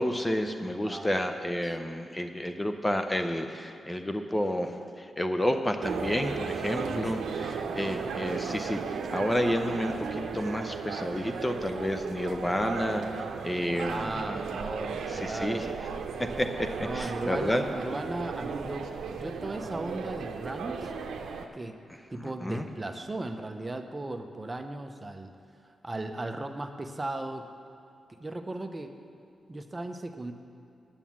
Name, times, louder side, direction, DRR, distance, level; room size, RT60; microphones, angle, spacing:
voice 1, 0.0-13.0 13.4-14.4 15.1-15.7 16.2-17.6 22.2-22.7, left 1 dB, 15° left, 6 dB, 0.6 m, -30 dB
sound 1, 5.8-21.5, right 5 dB, 90° right, 0.6 m, -35 dB
voice 2, 6.8-7.4 13.7-15.7 16.8-18.9 19.1-20.9 21.5-21.8 22.1-25.3 25.8-27.5 28.2-28.9 29.5-30.3, right 2 dB, 25° right, 7 dB, 0.7 m, -36 dB
9.0 x 7.1 x 7.4 m, 2.6 s
cardioid pair, 80°, 0 cm